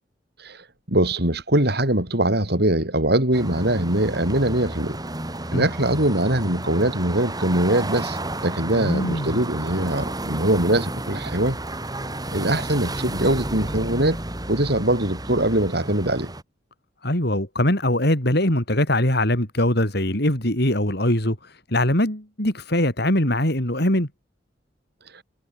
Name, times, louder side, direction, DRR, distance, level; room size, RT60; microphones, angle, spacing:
voice 1, 0.9-5.0 5.5-8.2 8.4-11.6 12.3-14.2 14.5-16.3 25.1-25.2, right 1 dB, 60° right, 6.0 m, -22 dB
sound 1, 3.3-16.4, right 1 dB, 20° right, 4.6 m, -32 dB
voice 2, 8.7-9.4 17.0-24.1, left 1 dB, 60° left, 7.0 m, -22 dB
head